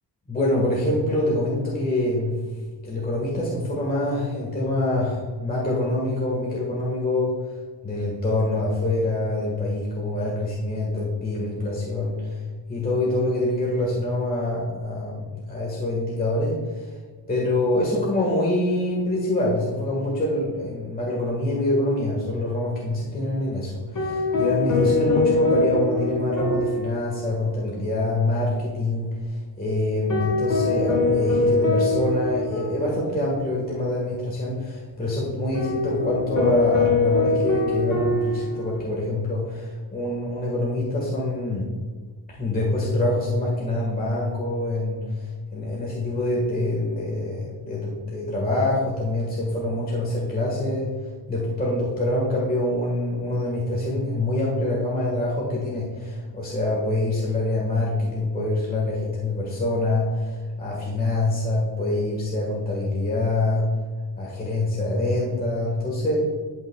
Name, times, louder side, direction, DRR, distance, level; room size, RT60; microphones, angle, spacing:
voice 1, 0.3-2.4 2.8-7.4 7.8-12.4 12.7-16.9 17.3-41.7 42.4-50.9 51.3-63.7 64.2-66.2, left 1 dB, 20° left, -4 dB, 1.5 m, -25 dB
sound 1, 24.0-27.5 27.8-27.9 30.1-33.4 35.5-38.8, left 3 dB, 50° left, 1.4 m, -23 dB
11.5 x 5.5 x 2.3 m, 1.4 s
wide cardioid pair, 155°, 41 cm